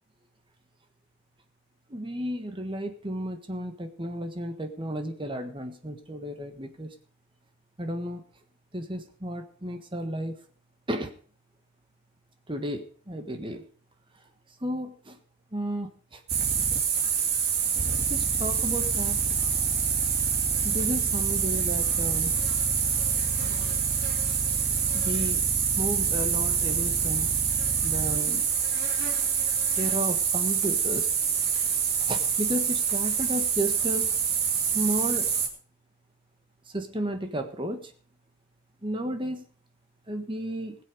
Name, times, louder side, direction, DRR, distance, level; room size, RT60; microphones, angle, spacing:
voice 1, 1.9-6.9 7.8-8.2 8.7-10.3 10.9-11.1 12.5-13.6 14.6-15.2 15.5-16.2 18.1-19.2 20.6-22.3 24.9-25.4 25.8-27.3 27.8-28.5 29.8-31.1 32.1-34.1 34.6-35.3 36.7-37.9 38.8-39.5 40.1-40.8, equal, 25° right, 6 dB, 1.4 m, -33 dB
sound 1, 16.3-35.5, right 6 dB, 50° right, 2.6 m, -26 dB
20.5 x 7.6 x 5.0 m, 0.43 s
head